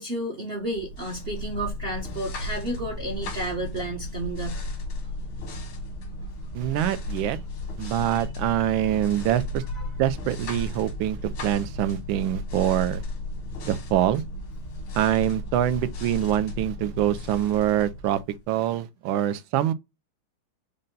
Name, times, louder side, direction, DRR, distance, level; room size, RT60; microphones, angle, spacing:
voice 1, 0.0-4.6 8.1-8.3 9.7-9.9 16.2-16.3, right 1 dB, 50° right, 0.7 m, -32 dB
sound 1, 0.7-18.5, left 1 dB, 90° left, 2.4 m, -35 dB
voice 2, 6.5-7.4 7.8-9.6 10.0-13.0 13.6-14.2 15.0-18.2 18.5-19.7, right 12 dB, 75° right, 1.3 m, -25 dB
5.4 x 2.1 x 3.7 m
omnidirectional pair, 2.3 m